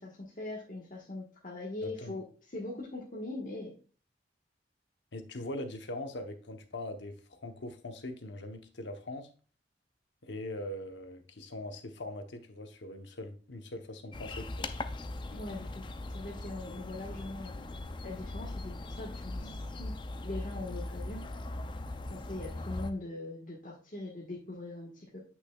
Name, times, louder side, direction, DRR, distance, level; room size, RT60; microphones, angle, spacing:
voice 1, 0.0-3.7 15.3-15.8 16.1-17.6 18.0-19.9 20.2-21.2 22.1-25.2, left 2 dB, 45° left, -5 dB, 1.4 m, -41 dB
voice 2, 1.8-2.2 5.1-9.3 10.2-14.7, left 1 dB, 85° left, 7 dB, 0.9 m, -41 dB
sound 1, 14.1-22.9, left 2 dB, 25° left, 0.4 m, -40 dB
8.1 x 6.0 x 2.3 m, 0.39 s
head